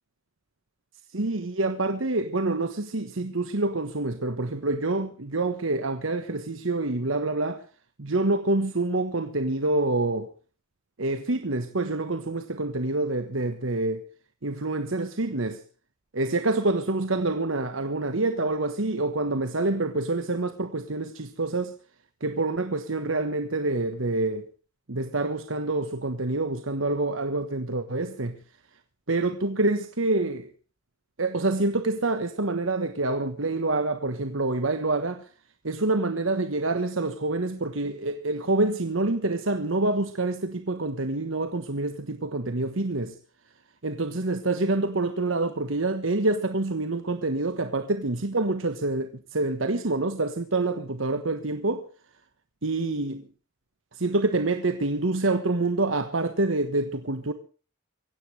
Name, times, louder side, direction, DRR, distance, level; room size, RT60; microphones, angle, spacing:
voice 1, 1.1-7.6 8.0-10.3 11.0-14.1 14.4-15.6 16.1-21.7 22.2-24.5 24.9-28.4 29.1-30.5 31.2-35.3 35.6-43.2 43.8-51.9 52.6-53.2 53.9-57.3, right 2 dB, 70° right, 1.3 m, -27 dB
24.5 x 16.5 x 3.4 m
head